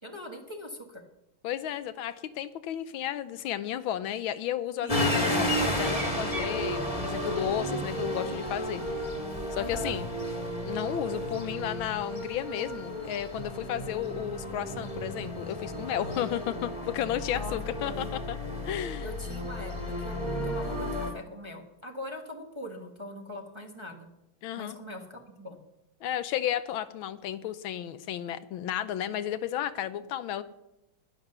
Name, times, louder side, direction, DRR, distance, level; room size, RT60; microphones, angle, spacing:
voice 1, 0.0-1.0 4.8-5.0 9.6-10.0 17.3-18.1 19.0-24.1 24.5-25.6, equal, 15° right, 2 dB, 1.2 m, -42 dB
voice 2, 1.4-8.8 9.5-10.0 10.6-18.4 18.6-19.1 24.4-24.8 26.0-30.4, left 11 dB, 80° left, 13 dB, 1.4 m, -33 dB
sound 1, 4.9-21.1, equal, 15° left, 1.9 m, -33 dB
11.0 x 10.5 x 6.7 m, 0.89 s
omnidirectional pair, 2.3 m